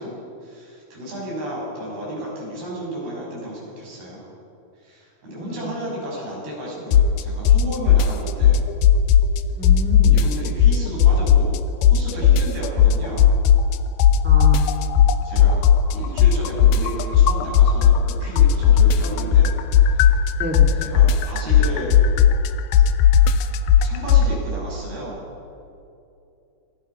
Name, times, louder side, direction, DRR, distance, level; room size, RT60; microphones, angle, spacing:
voice 1, 0.0-4.3 4.8-8.6 10.1-11.5 11.9-13.3 15.2-15.6 15.9-20.1 20.7-21.9 23.8-25.3, equal, 85° right, -5 dB, 9.0 m, -33 dB
voice 2, 5.3-5.7 9.6-10.2 14.2-14.7 20.4-20.8, equal, 5° right, 1 dB, 1.3 m, -29 dB
sound 1, 6.9-7.2 7.5-9.4 9.6-11.6 11.8-13.7 14.0-18.1 18.4-24.3, left 8 dB, 75° left, 2.0 m, -14 dB
25.5 x 19.0 x 5.7 m, 2.6 s
omnidirectional pair, 4.3 m